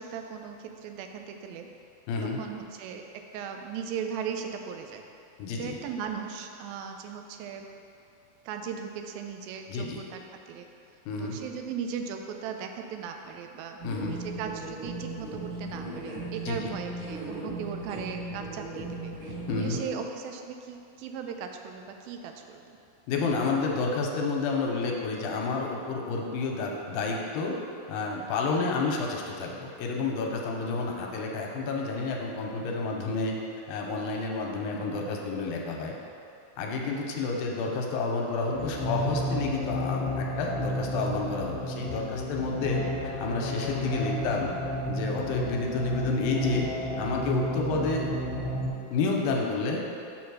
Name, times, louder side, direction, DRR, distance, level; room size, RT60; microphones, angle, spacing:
voice 1, 0.0-1.7 2.2-3.1 3.3-5.0 5.6-7.7 8.5-10.7 11.2-13.8 14.1-22.8 28.6-28.7 34.7-34.8 42.8-43.0 47.7-47.9, right 7 dB, 85° right, 5 dB, 2.3 m, -38 dB
voice 2, 2.1-2.4 5.4-5.8 9.7-10.0 11.1-11.4 13.8-14.2 16.4-16.6 19.5-19.8 23.1-27.6 27.9-33.4 33.7-35.9 36.6-42.8 43.2-44.5 44.9-46.7 47.0-48.1 48.9-49.8, left 3 dB, 85° left, 0 dB, 2.4 m, -30 dB
sound 1, 13.8-19.8, right 2 dB, 60° right, 1.5 m, -37 dB
sound 2, 38.5-48.7, equal, 65° left, 1.6 m, -32 dB
7.0 x 3.9 x 6.2 m, 2.6 s
omnidirectional pair, 4.2 m